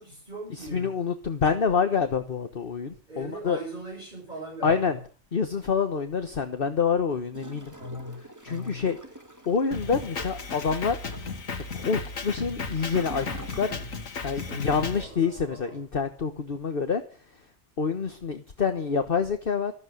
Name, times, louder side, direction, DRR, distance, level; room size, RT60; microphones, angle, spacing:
voice 1, 0.0-1.0 3.1-5.0 7.8-8.9 14.3-15.8, equal, 35° right, 5.4 m, -40 dB
voice 2, 0.7-3.6 4.6-5.0 5.3-7.7 8.4-9.0 9.5-11.0 11.7-13.9 14.2-17.0 17.8-19.7, left 6 dB, 45° left, 1.3 m, -27 dB
Gurgling / Toilet flush, 7.3-14.2 14.5-14.6, right 1 dB, 15° right, 1.9 m, -46 dB
Drum kit, 9.7-15.0, left 4 dB, 80° left, 2.1 m, -35 dB
14.0 x 13.5 x 6.6 m
omnidirectional pair, 1.4 m